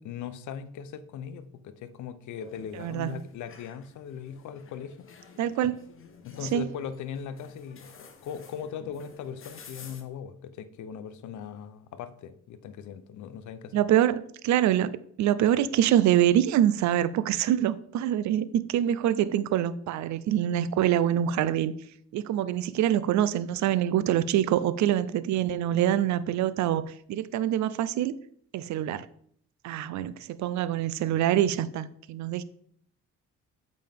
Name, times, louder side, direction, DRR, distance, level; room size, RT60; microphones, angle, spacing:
voice 1, 0.0-5.0 5.6-5.7 6.2-13.8, left 7 dB, 75° left, 0.7 m, -39 dB
sound 1, 2.4-10.0, left 5 dB, 45° left, 1.1 m, -51 dB
voice 2, 2.8-3.2 5.4-5.8 6.5-6.7 13.7-21.7 22.1-28.2 28.5-29.1 29.6-30.1 30.4-32.4, right 11 dB, 70° right, 0.5 m, -25 dB
7.6 x 5.2 x 3.5 m
cardioid pair, 90°, 30 cm